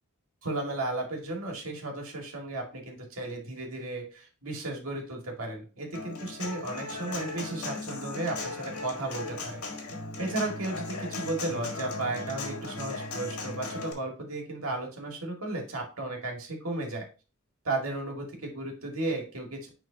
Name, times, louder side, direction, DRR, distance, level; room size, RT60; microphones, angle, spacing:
voice 1, 0.4-9.6 10.2-17.0 17.6-19.7, right 2 dB, 70° right, 0 dB, 2.1 m, -34 dB
Human voice / Acoustic guitar, 5.9-13.9, left 3 dB, 85° left, 1.8 m, -37 dB
9.5 x 3.8 x 2.8 m, 0.34 s
head